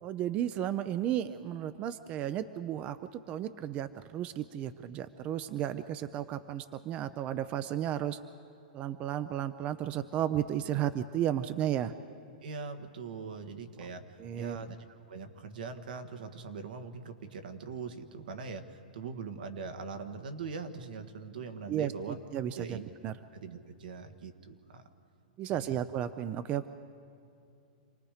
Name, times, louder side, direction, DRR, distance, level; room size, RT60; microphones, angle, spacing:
voice 1, 0.0-8.2 8.7-11.9 14.2-14.6 21.7-23.2 25.4-26.7, right 11 dB, 30° right, 12 dB, 0.5 m, -33 dB
voice 2, 12.4-22.2 22.6-22.8 23.3-24.9 25.5-25.8, right 5 dB, 80° right, 7 dB, 1.6 m, -42 dB
27.5 x 19.0 x 5.0 m, 2.5 s
hypercardioid pair, 140°, 5 cm